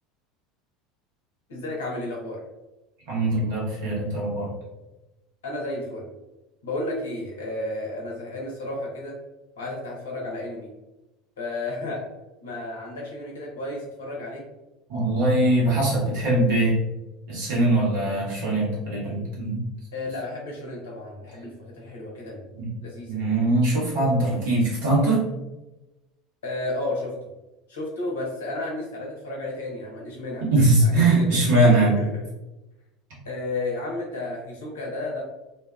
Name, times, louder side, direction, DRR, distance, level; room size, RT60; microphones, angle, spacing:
voice 1, 1.5-2.4 5.4-6.1 6.6-9.1 9.6-10.7 11.4-12.0 12.4-14.4 19.9-22.5 22.8-23.2 26.4-27.1 27.7-30.4 30.8-32.1 33.2-35.2, left 2 dB, 70° left, -2 dB, 0.8 m, -32 dB
voice 2, 3.1-4.5 14.9-16.8 17.3-19.6 22.5-22.7 23.1-25.2 30.5-32.0, right 2 dB, 60° right, -6 dB, 1.1 m, -21 dB
2.5 x 2.2 x 2.3 m, 1.0 s
figure-of-eight pair, 70°, 0 cm